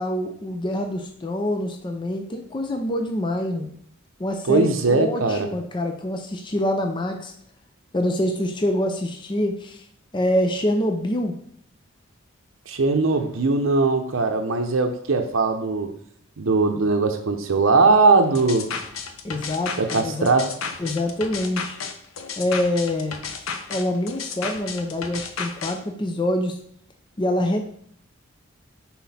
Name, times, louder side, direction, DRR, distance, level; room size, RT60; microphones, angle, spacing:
voice 1, 0.0-3.7 4.2-7.3 7.9-9.8 10.1-11.4 19.2-20.3 20.8-21.8 22.4-26.6 27.2-27.6, left 1 dB, 25° left, 5 dB, 0.5 m, -25 dB
voice 2, 4.5-5.5 12.7-15.9 16.4-18.7 19.8-20.5, right 3 dB, 75° right, 5 dB, 0.6 m, -20 dB
sound 1, 18.4-25.8, left 5 dB, 80° left, 0.7 m, -33 dB
5.9 x 4.2 x 4.1 m, 0.66 s
head